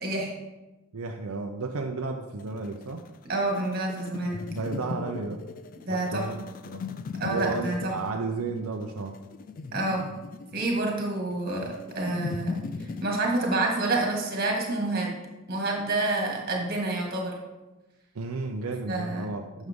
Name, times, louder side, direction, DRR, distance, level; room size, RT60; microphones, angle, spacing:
voice 1, 0.0-0.3 3.2-4.4 5.8-6.3 7.2-7.9 9.7-10.1 10.5-15.1 15.5-17.3 18.9-19.2 19.6-19.7, right 2 dB, 45° right, 0 dB, 1.9 m, -28 dB
voice 2, 0.9-3.0 4.5-5.4 5.9-6.8 7.3-9.1 18.1-19.7, right 3 dB, 85° right, 3 dB, 0.6 m, -33 dB
sound 1, 2.4-13.1, left 4 dB, 40° left, 0.3 m, -38 dB
9.5 x 6.4 x 3.6 m, 1.1 s
head